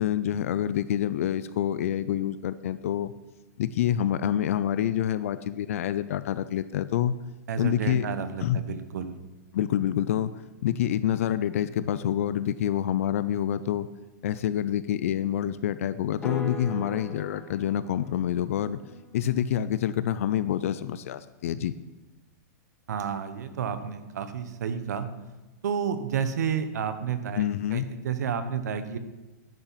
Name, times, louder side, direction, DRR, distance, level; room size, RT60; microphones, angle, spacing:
voice 1, 0.0-3.1 3.6-7.2 7.6-8.1 8.4-8.6 9.5-10.3 10.6-13.9 14.2-18.8 19.1-21.7 27.4-27.9, left 10 dB, 50° left, 14 dB, 0.4 m, -27 dB
voice 2, 7.5-9.1 22.9-25.1 25.6-27.5 27.7-29.0, right 7 dB, 70° right, 10 dB, 1.0 m, -30 dB
sound 1, 16.2-20.3, equal, 5° left, 0.9 m, -41 dB
10.5 x 5.8 x 5.7 m, 1.1 s
supercardioid pair, 170°, 9 cm